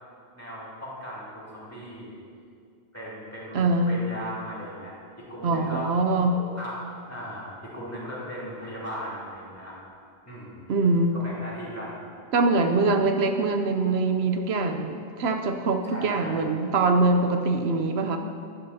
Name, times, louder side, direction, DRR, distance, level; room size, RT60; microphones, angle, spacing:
voice 1, 0.3-2.2 2.9-5.9 6.3-9.8 10.2-10.6 11.1-12.0 15.8-16.5, equal, 15° left, -9 dB, 2.8 m, -38 dB
voice 2, 3.5-4.0 5.4-6.3 10.7-11.2 12.3-18.2, right 3 dB, 80° right, 5 dB, 0.9 m, -23 dB
12.0 x 11.0 x 2.7 m, 2.3 s
omnidirectional pair, 1.1 m